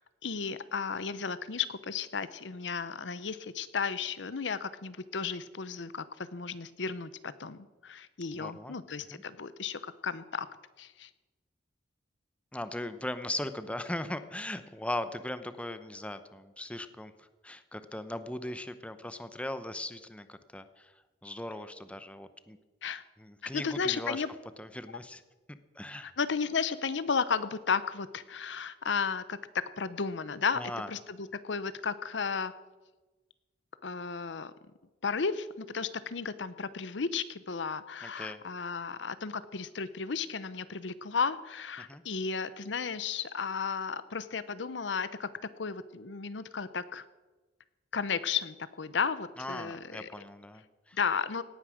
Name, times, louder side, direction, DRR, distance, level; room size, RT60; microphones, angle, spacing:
voice 1, 0.2-10.5 10.8-11.1 22.8-23.0 23.4-24.3 26.0-30.6 30.9-32.5 33.8-34.5 35.0-45.3 45.6-47.0 47.9-50.1 50.9-51.4, left 5 dB, 80° left, 15 dB, 0.8 m, -34 dB
voice 2, 8.3-8.8 9.1-9.2 12.5-20.9 21.2-22.6 23.2-24.2 24.6-25.2 25.7-26.1 30.5-30.9 38.0-38.4 41.8-42.0 49.4-51.0, left 1 dB, 5° left, 11 dB, 0.7 m, -39 dB
17.5 x 9.6 x 6.4 m, 1.2 s
head